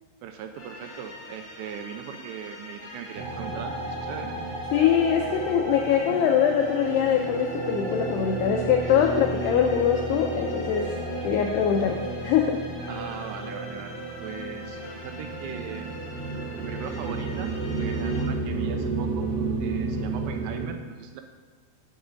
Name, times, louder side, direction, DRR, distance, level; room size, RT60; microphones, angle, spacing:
voice 1, 0.2-4.3 12.9-15.9 16.6-19.3 19.6-21.2, right 8 dB, 80° right, 5 dB, 2.7 m, -39 dB
sound 1, 0.6-18.3, left 2 dB, 40° left, 1.8 m, -44 dB
sound 2, 3.1-20.6, right 3 dB, 45° right, 3.2 m, -32 dB
voice 2, 4.7-10.9 11.2-12.6, left 8 dB, 85° left, 3 dB, 2.3 m, -23 dB
17.0 x 6.5 x 4.0 m, 1.4 s
omnidirectional pair, 5.4 m